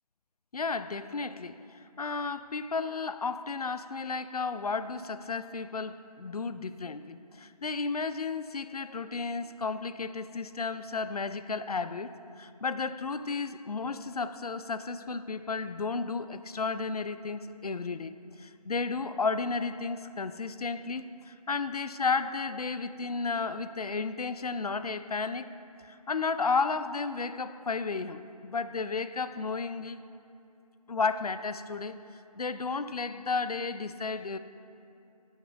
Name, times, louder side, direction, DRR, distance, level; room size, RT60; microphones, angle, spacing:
voice 1, 0.5-1.6 2.0-12.1 12.4-18.1 18.4-25.5 25.8-30.0 30.9-32.0 32.4-34.4, left 4 dB, 70° left, 13 dB, 0.4 m, -33 dB
10.0 x 8.9 x 2.4 m, 2.7 s
figure-of-eight pair, 175°, 20 cm